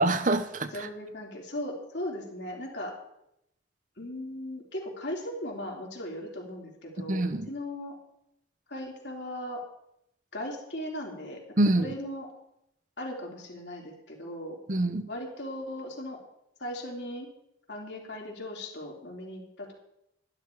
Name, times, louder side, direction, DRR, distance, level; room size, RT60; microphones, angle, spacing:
voice 1, 0.0-0.9 7.1-7.5 11.6-11.9 14.7-15.0, right 2 dB, 45° right, 0.8 m, -25 dB
voice 2, 0.7-2.9 4.0-8.0 8.7-9.6 10.3-12.3 13.0-14.6 15.1-16.2 16.6-17.3 17.7-19.7, left 1 dB, 70° left, 3.6 m, -38 dB
12.5 x 11.5 x 4.7 m
head